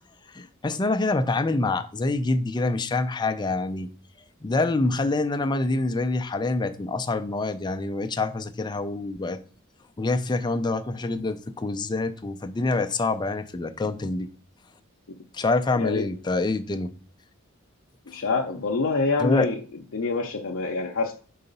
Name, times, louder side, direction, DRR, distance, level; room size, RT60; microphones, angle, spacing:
voice 1, 0.3-3.9 4.4-9.4 10.0-14.3 15.3-16.9 19.2-19.5, left 3 dB, 20° left, 7 dB, 0.4 m, -26 dB
voice 2, 15.8-16.1 18.1-19.6 19.9-21.1, left 3 dB, 65° left, 0 dB, 0.6 m, -26 dB
4.7 x 3.9 x 5.3 m, 0.41 s
head